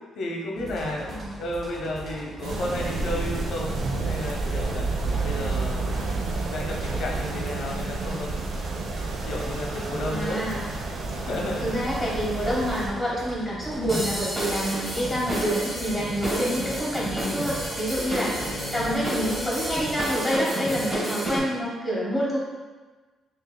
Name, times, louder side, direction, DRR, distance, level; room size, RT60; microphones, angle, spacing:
voice 1, 0.2-3.8 4.0-4.9 5.2-6.1 6.4-8.3 9.2-10.4 11.2-11.7 16.6-16.7 18.3-19.1, left 1 dB, 70° left, -1 dB, 0.8 m, -33 dB
sound 1, 0.6-20.2, right 1 dB, 35° right, 0.9 m, -40 dB
voice 2, 1.0-1.4 10.1-10.6 11.6-18.4 18.7-22.4, equal, ahead, -8 dB, 1.4 m, -27 dB
sound 2, 2.4-12.9, right 3 dB, 70° right, 0.6 m, -30 dB
sound 3, 13.9-21.4, right 1 dB, 20° right, 1.4 m, -30 dB
5.9 x 2.7 x 2.2 m, 1.3 s
cardioid pair, 90°, 0 cm